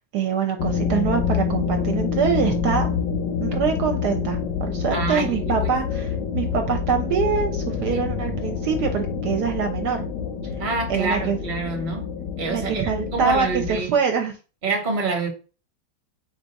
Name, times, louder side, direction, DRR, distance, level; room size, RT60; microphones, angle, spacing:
voice 1, 0.1-2.9 3.4-6.1 6.3-10.0 10.9-11.4 12.5-14.3, right 6 dB, 75° right, 1.1 m, -24 dB
sound 1, 0.6-13.7, left 6 dB, 85° left, 1.2 m, -27 dB
voice 2, 4.9-5.7 7.9-8.0 10.6-12.1 12.4-13.9 14.6-15.3, right 4 dB, 35° right, 1.0 m, -27 dB
4.7 x 2.4 x 4.0 m
omnidirectional pair, 1.9 m